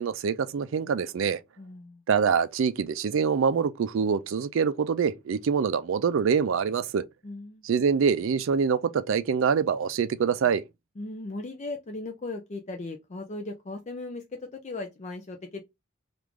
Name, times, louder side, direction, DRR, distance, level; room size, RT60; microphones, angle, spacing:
voice 1, 0.0-1.4 2.1-7.0 7.6-10.6, right 6 dB, 65° right, 0.4 m, -25 dB
voice 2, 1.6-2.0 7.2-7.6 11.0-15.6, left 2 dB, 35° left, 0.5 m, -37 dB
3.1 x 2.5 x 3.4 m
head